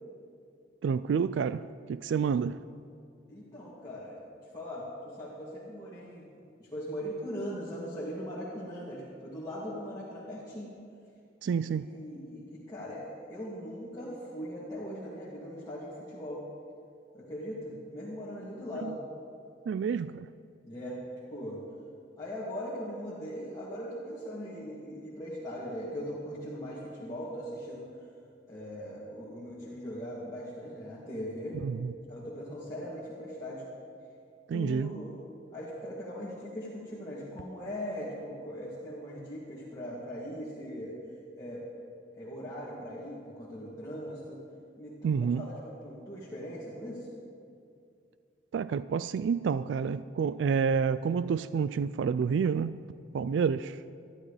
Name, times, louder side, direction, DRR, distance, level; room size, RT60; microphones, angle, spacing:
voice 1, 0.8-2.6 11.4-12.0 19.7-20.3 31.6-31.8 34.5-34.9 45.0-45.5 48.5-52.8 53.1-53.8, right 6 dB, 85° right, 0.3 m, -29 dB
voice 2, 3.3-4.2 4.5-6.2 6.6-10.7 11.6-16.4 17.1-19.0 20.6-21.0 21.3-21.6 22.2-27.9 28.5-31.6 32.1-33.6 34.5-35.2 35.5-40.9 41.4-41.6 42.1-44.4 44.8-45.5 45.8-47.1, equal, 20° left, 2.5 m, -40 dB
21.0 x 13.0 x 3.4 m
head